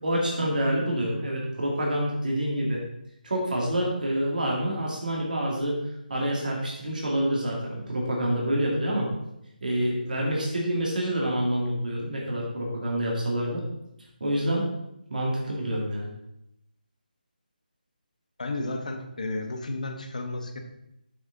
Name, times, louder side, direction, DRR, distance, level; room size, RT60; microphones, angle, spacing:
voice 1, 0.0-2.8 3.2-5.8 6.1-9.1 9.6-13.6 14.2-14.7 15.1-16.1, right 1 dB, 60° right, -2 dB, 2.2 m, -27 dB
voice 2, 18.4-20.6, left 2 dB, 50° left, 4 dB, 1.1 m, -32 dB
7.0 x 6.2 x 3.9 m, 0.82 s
hypercardioid pair, 180°, 5 cm